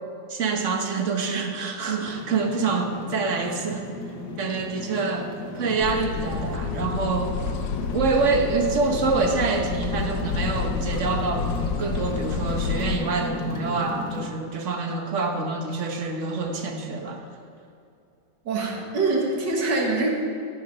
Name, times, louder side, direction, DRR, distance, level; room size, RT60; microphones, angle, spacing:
voice 1, 0.3-3.9 4.4-5.3 5.5-7.4 7.9-17.2, right 4 dB, 45° right, 4 dB, 1.2 m, -26 dB
sound 1, 2.0-14.3, left 3 dB, 65° left, 1.7 m, -35 dB
sound 2, 5.8-13.0, left 5 dB, 80° left, 1.4 m, -30 dB
voice 2, 18.4-20.1, right 3 dB, 70° right, -1 dB, 2.2 m, -24 dB
13.5 x 6.6 x 5.4 m, 2.6 s
omnidirectional pair, 2.0 m